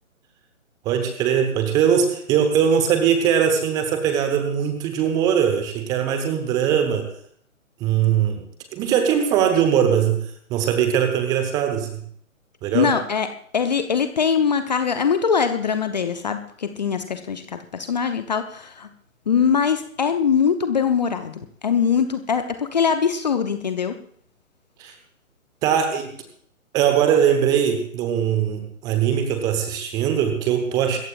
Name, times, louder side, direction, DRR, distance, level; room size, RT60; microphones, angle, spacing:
voice 1, 0.8-7.0 7.8-8.4 8.7-10.2 10.5-11.9 12.6-12.9 24.8-24.9 25.6-26.1 26.7-31.0, right 8 dB, 10° right, 6 dB, 0.9 m, -20 dB
voice 2, 12.7-13.3 13.5-18.9 19.3-24.0, left 6 dB, 30° left, 9 dB, 0.7 m, -22 dB
25.5 x 14.0 x 2.4 m, 0.63 s
figure-of-eight pair, 140°, 41 cm